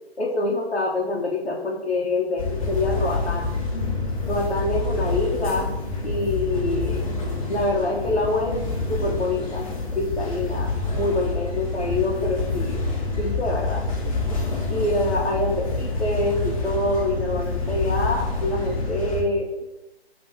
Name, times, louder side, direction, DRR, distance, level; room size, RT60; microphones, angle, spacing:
voice 1, 0.2-3.5 4.3-5.7 6.0-7.1 7.5-8.6 8.9-9.6 9.9-12.8 13.2-13.8 14.7-19.5, left 2 dB, 75° left, -3 dB, 0.8 m, -25 dB
sound 1, 2.4-19.2, left 3 dB, 35° left, 0.8 m, -27 dB
5.0 x 2.9 x 2.7 m, 1.1 s
figure-of-eight pair, 140°, 32 cm